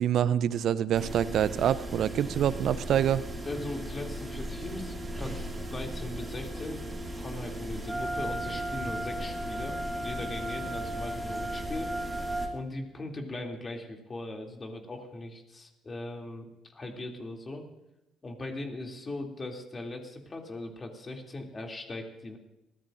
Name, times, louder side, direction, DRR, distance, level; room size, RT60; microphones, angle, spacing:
voice 1, 0.0-3.2, right 10 dB, 55° right, 17 dB, 0.6 m, -26 dB
sound 1, 0.9-12.5, right 1 dB, 20° right, 2.7 m, -38 dB
voice 2, 3.4-6.8 7.2-11.9 12.5-17.6 18.2-22.4, left 2 dB, 30° left, 2 dB, 2.8 m, -39 dB
Wind instrument woodwind instrument, 7.9-12.5, right 1 dB, 5° right, 2.3 m, -35 dB
23.5 x 16.5 x 2.6 m, 0.91 s
figure-of-eight pair, 50°, 0 cm